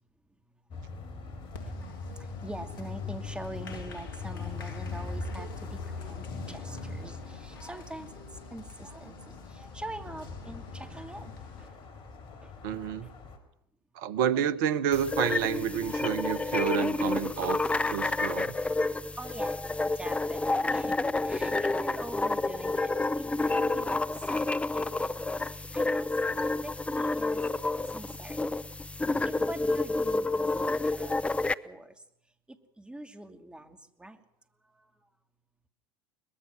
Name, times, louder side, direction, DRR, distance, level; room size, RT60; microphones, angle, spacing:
sound 1, 0.7-13.4, left 4 dB, 45° left, 4.4 m, -41 dB
Applause, 1.5-11.7, left 4 dB, 70° left, 3.1 m, -50 dB
voice 1, 2.2-8.2 8.5-11.7 12.4-12.5 13.0-13.1 18.9-24.0 24.3-24.4 24.7-25.0 25.5-26.1 26.6-27.4 27.9-28.4 29.2-31.9 32.8-34.2, right 1 dB, 10° right, 2.5 m, -44 dB
voice 2, 12.6-13.1 13.9-17.6 17.9-18.6, right 9 dB, 60° right, 1.2 m, -29 dB
sound 2, 14.9-31.5, left 2 dB, 10° left, 0.7 m, -29 dB
22.5 x 21.0 x 6.2 m
figure-of-eight pair, 75°, 12 cm